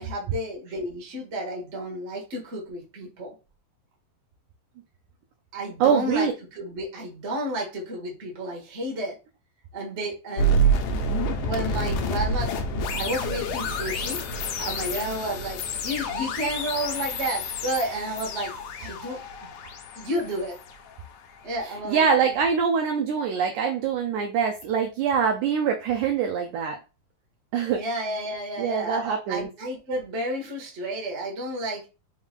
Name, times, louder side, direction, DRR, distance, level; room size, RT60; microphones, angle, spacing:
voice 1, 0.0-3.3 5.5-9.1 9.7-10.6 11.4-14.2 14.6-18.5 18.8-19.5 19.9-20.5 21.4-22.4 27.8-31.9, right 1 dB, 70° right, -2 dB, 0.6 m, -31 dB
voice 2, 5.8-6.3 21.6-26.8 27.5-27.8 28.6-29.5, right 6 dB, 85° right, 3 dB, 1.7 m, -24 dB
sound 1, 10.4-21.4, right 1 dB, 80° left, 1.9 m, -28 dB
5.3 x 3.6 x 2.4 m, 0.31 s
omnidirectional pair, 4.0 m